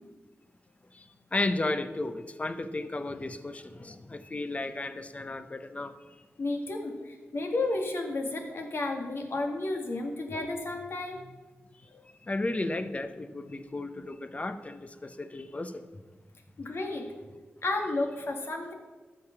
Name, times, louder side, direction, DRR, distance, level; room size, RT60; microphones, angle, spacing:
voice 1, 0.9-5.9 12.2-15.9, left 2 dB, 30° left, 0.9 m, -34 dB
voice 2, 6.4-11.2 11.9-12.0 16.6-17.1 17.6-18.7, left 2 dB, 60° left, 2.1 m, -32 dB
13.0 x 6.9 x 5.9 m
wide cardioid pair, 75°, 5 cm